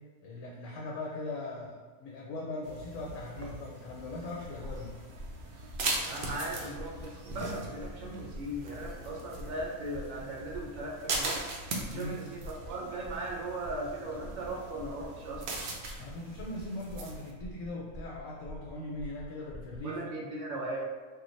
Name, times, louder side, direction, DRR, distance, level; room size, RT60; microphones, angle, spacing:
voice 1, 0.2-4.9 11.9-12.2 16.0-20.0, left 2 dB, 75° left, -3 dB, 0.9 m, -40 dB
sound 1, 2.6-17.3, right 2 dB, 65° right, 0.5 m, -40 dB
sound 2, 4.6-19.9, equal, 50° left, 0.5 m, -47 dB
voice 2, 6.0-11.4 11.9-15.4 19.8-20.8, right 1 dB, 80° right, -2 dB, 1.0 m, -38 dB
3.3 x 2.2 x 3.1 m, 1.5 s
omnidirectional pair, 1.4 m